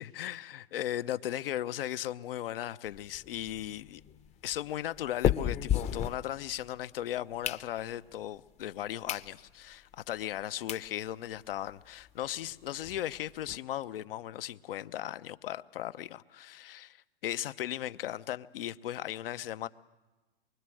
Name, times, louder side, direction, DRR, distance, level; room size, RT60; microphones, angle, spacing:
voice 1, 0.0-4.0 4.4-19.7, left 12 dB, 65° left, 0.9 m, -37 dB
sound 1, 2.9-6.8 7.2-8.1 8.6-8.7 9.0-9.3 9.7-9.8 10.4-10.5 10.7-10.9 11.3-11.4 11.6-11.7 12.0-12.1 12.4-13.6, left 10 dB, 20° left, 0.8 m, -34 dB
24.0 x 24.0 x 7.8 m
hypercardioid pair, 125°, 30 cm